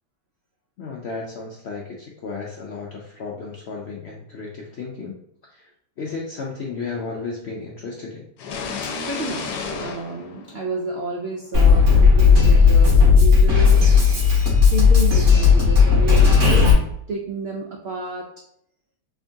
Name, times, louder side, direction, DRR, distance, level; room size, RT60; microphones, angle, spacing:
voice 1, 0.8-5.1 5.4-5.7 6.0-8.3, left 4 dB, 70° left, -2 dB, 0.6 m, -33 dB
sound 1, 8.4-11.2, left 4 dB, 90° left, 1.2 m, -32 dB
voice 2, 8.8-13.9 14.7-18.3, right 3 dB, 80° right, 0 dB, 0.5 m, -30 dB
Drum kit, 11.5-16.7, left 5 dB, 50° right, 2.1 m, -14 dB
3.6 x 3.5 x 2.6 m, 0.70 s
omnidirectional pair, 1.7 m